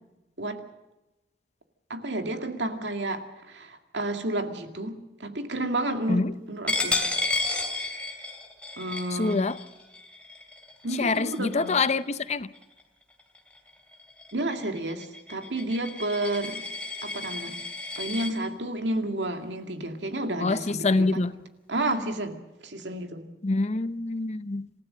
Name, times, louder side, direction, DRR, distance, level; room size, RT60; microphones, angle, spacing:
voice 1, 1.9-7.0 8.8-9.5 10.8-11.8 14.3-16.6 17.0-17.6 18.0-21.3 21.7-22.4 22.6-23.3, right 1 dB, 85° right, 6 dB, 2.1 m, -31 dB
Coin (dropping), 6.7-12.1 12.5-12.8 13.2-18.3, left 2 dB, 5° left, 2.9 m, -33 dB
voice 2, 9.1-9.6 11.0-12.5 20.4-21.3 23.4-24.7, left 3 dB, 40° left, 14 dB, 0.7 m, -25 dB
27.0 x 15.5 x 6.5 m, 1.0 s
head